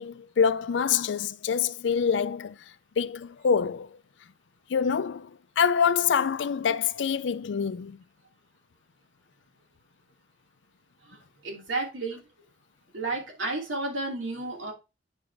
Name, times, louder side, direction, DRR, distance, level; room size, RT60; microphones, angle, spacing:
voice 1, 0.0-2.6 3.0-3.9 4.7-8.0, left 7 dB, 70° left, 0.4 m, -26 dB
voice 2, 11.4-12.2 12.9-14.7, right 2 dB, 85° right, 2.7 m, -32 dB
9.7 x 4.0 x 3.3 m
head